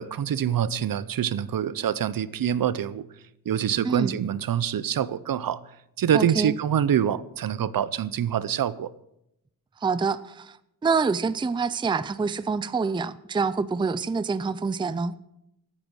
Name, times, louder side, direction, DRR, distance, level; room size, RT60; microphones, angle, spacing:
voice 1, 0.0-3.1 3.5-5.6 6.0-8.9, right 9 dB, 70° right, 0.6 m, -25 dB
voice 2, 3.8-4.2 6.1-6.5 9.8-10.6 10.8-15.1, right 4 dB, 15° right, 0.4 m, -26 dB
13.5 x 9.1 x 6.2 m
wide cardioid pair, 130°, 36 cm